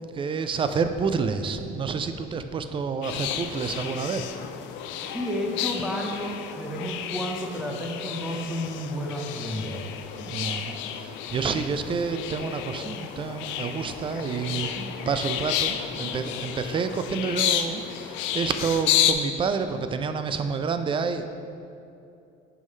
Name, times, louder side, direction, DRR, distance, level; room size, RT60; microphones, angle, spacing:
voice 1, 0.2-4.2 10.1-10.8 11.3-21.3, right 5 dB, 25° right, 9 dB, 0.4 m, -28 dB
sound 1, 3.0-19.1, left 10 dB, 75° left, 0.4 m, -31 dB
voice 2, 5.1-9.8, equal, 5° right, -2 dB, 0.7 m, -31 dB
6.3 x 5.6 x 3.2 m, 2.6 s
cardioid pair, 105°, 19 cm